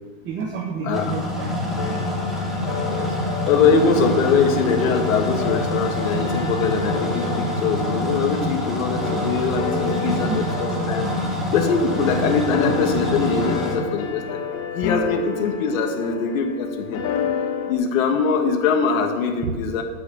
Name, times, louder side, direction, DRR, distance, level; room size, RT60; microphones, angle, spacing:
voice 1, 0.2-1.6 9.9-10.4 19.4-19.5, right 5 dB, 25° right, 0 dB, 1.0 m, -29 dB
sound 1, 0.9-13.8, left 1 dB, ahead, 1.6 m, -26 dB
sound 2, 1.8-17.7, left 6 dB, 45° left, 1.4 m, -31 dB
voice 2, 3.5-11.1 11.5-14.4 14.7-17.0 17.7-19.8, left 5 dB, 75° left, 5 dB, 1.7 m, -22 dB
9.9 x 6.3 x 7.4 m, 1.5 s
supercardioid pair, 155°, 40 cm